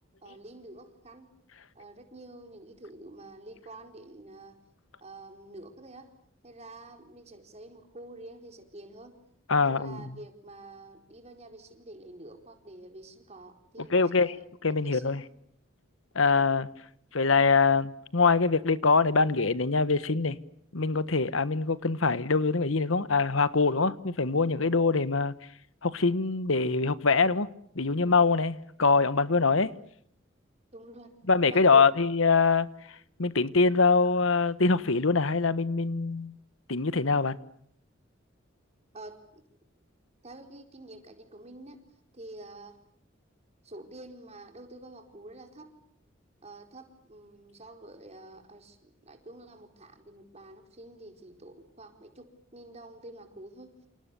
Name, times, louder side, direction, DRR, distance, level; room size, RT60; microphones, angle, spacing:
voice 1, 0.2-1.3 1.7-4.6 5.0-6.1 6.4-9.2 9.6-15.3 16.2-16.4 30.7-31.1 31.5-31.9 38.9-39.4 40.2-41.8 42.1-42.8 43.6-45.7 46.4-53.7, right 2 dB, 35° right, 4.4 m, -48 dB
voice 2, 9.5-10.1 13.9-14.3 14.6-15.2 16.1-16.7 17.1-20.4 20.7-25.3 25.8-27.5 27.7-29.7 31.3-36.3 36.7-37.4, left 4 dB, 85° left, 1.3 m, -24 dB
28.5 x 28.0 x 7.0 m
head